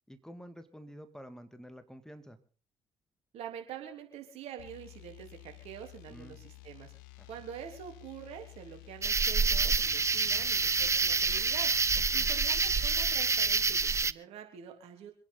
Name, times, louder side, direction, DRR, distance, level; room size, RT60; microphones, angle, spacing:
voice 1, 0.1-2.4 6.1-6.5 7.2-7.3 10.4-10.5 12.0-12.3, equal, 5° left, 9 dB, 2.1 m, -49 dB
voice 2, 3.3-6.9 7.3-11.7 12.1-15.1, right 9 dB, 70° right, 4 dB, 3.5 m, -45 dB
sound 1, 4.6-13.7, left 22 dB, 85° left, 0.8 m, -52 dB
sound 2, 9.0-14.1, right 4 dB, 25° right, 0.6 m, -27 dB
26.5 x 9.7 x 4.0 m, 0.39 s
hypercardioid pair, 50°, 11 cm